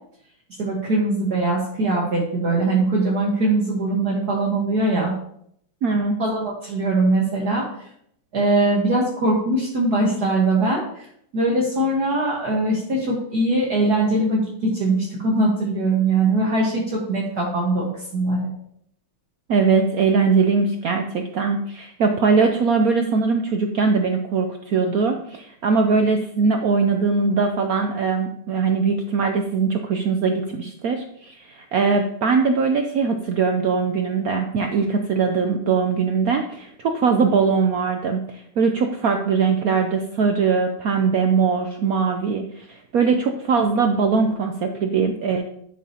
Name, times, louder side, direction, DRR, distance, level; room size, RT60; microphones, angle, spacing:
voice 1, 0.6-5.1 6.2-7.9 8.3-18.5, right 2 dB, 50° right, -3 dB, 1.8 m, -21 dB
voice 2, 5.8-6.2 19.5-45.4, right 5 dB, 85° right, 5 dB, 0.8 m, -21 dB
11.0 x 7.1 x 2.9 m, 0.70 s
omnidirectional pair, 2.4 m